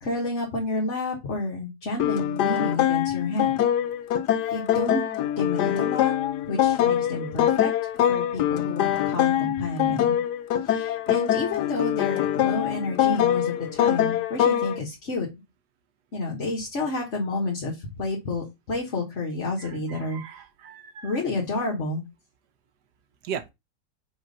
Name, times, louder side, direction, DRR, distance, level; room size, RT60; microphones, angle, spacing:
voice 1, 0.0-3.6 4.5-5.0 5.4-6.1 6.5-7.7 8.1-10.2 10.7-15.3 16.1-20.2 21.0-22.0, left 2 dB, 45° left, 1.6 m, -30 dB
sound 1, 2.0-14.8, left 11 dB, 80° left, 1.2 m, -24 dB
voice 2, 19.6-21.2 23.2-23.4, right 7 dB, 80° right, 1.4 m, -38 dB
5.9 x 3.3 x 5.3 m
omnidirectional pair, 1.8 m